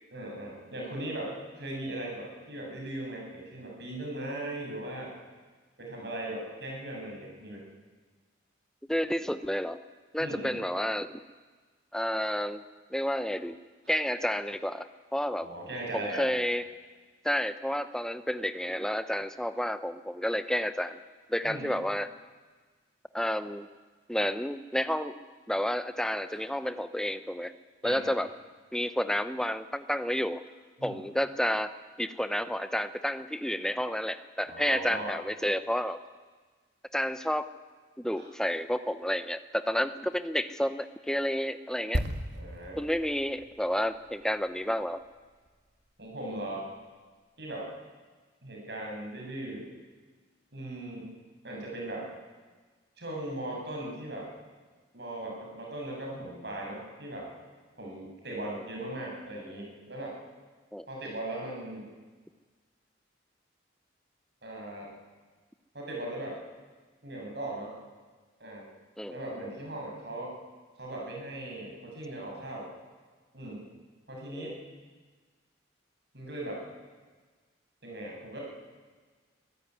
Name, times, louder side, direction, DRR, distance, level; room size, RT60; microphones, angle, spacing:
voice 1, 0.1-5.1 5.8-7.7 10.2-10.6 15.4-16.3 21.4-21.7 26.3-26.4 27.8-28.1 30.8-31.0 34.5-35.1 38.1-38.3 42.3-42.8 46.0-46.7 47.4-47.7 48.4-49.7 50.5-51.1 51.4-52.1 53.0-54.3 54.9-57.3 57.8-60.2 60.9-61.9 64.4-64.9 65.7-66.4 67.0-67.7 68.4-68.7 69.1-70.3 70.8-72.7 73.3-73.6 74.1-74.6 76.1-76.6 77.8-78.4, right 1 dB, 60° right, -2 dB, 7.9 m, -38 dB
voice 2, 8.9-9.8 10.1-11.1 11.9-12.6 12.9-13.6 13.9-15.5 15.9-16.6 17.2-21.0 21.3-22.1 23.1-23.7 24.1-25.2 25.5-27.5 27.8-28.3 28.7-30.4 30.8-31.7 32.0-36.0 36.9-37.5 38.0-42.0 42.8-45.0 58.5-58.6 60.7-60.9 69.0-69.2 74.3-74.6, equal, 5° left, 11 dB, 0.8 m, -30 dB
sound 1, 41.9-45.6 45.9-46.1, equal, 75° right, 2.2 m, -37 dB
24.0 x 15.0 x 9.9 m, 1.4 s
head